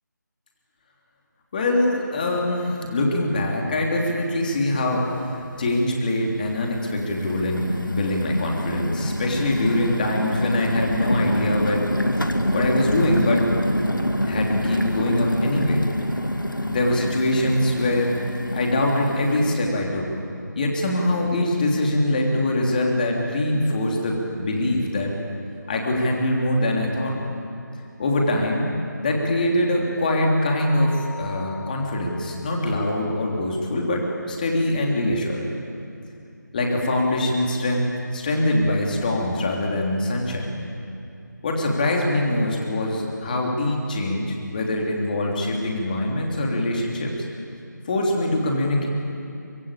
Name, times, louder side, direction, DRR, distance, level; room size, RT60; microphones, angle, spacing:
voice 1, 1.5-11.8 12.2-12.3 12.5-13.5 14.3-15.9 16.7-18.2 18.5-20.1 20.5-25.1 25.7-27.2 28.0-28.7 29.0-35.5 36.5-40.5 41.4-47.3 47.9-48.9, left 1 dB, 25° left, 0 dB, 3.3 m, -23 dB
sound 1, 4.6-4.7 5.1-5.7 6.4-19.6, equal, 90° left, 2.0 m, -26 dB
Keyboard (musical), 30.6-33.0, left 4 dB, 65° left, 5.1 m, -43 dB
24.5 x 22.5 x 8.6 m, 2.6 s
figure-of-eight pair, 160°, 10 cm